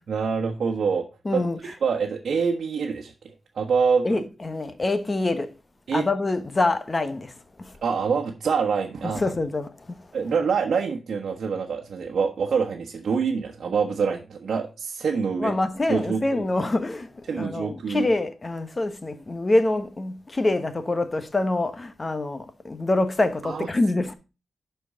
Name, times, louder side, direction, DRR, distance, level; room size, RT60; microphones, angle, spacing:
voice 1, 0.1-1.1 1.3-4.2 5.9-6.1 7.8-9.3 10.1-15.5 15.9-16.2 17.3-18.1 23.4-23.7, right 5 dB, 70° right, 1.2 m, -26 dB
voice 2, 1.2-1.6 4.0-5.5 5.9-7.3 7.6-7.8 9.1-10.1 15.4-24.1, left 2 dB, 25° left, 1.1 m, -25 dB
12.0 x 4.6 x 4.9 m
wide cardioid pair, 120°, 0 cm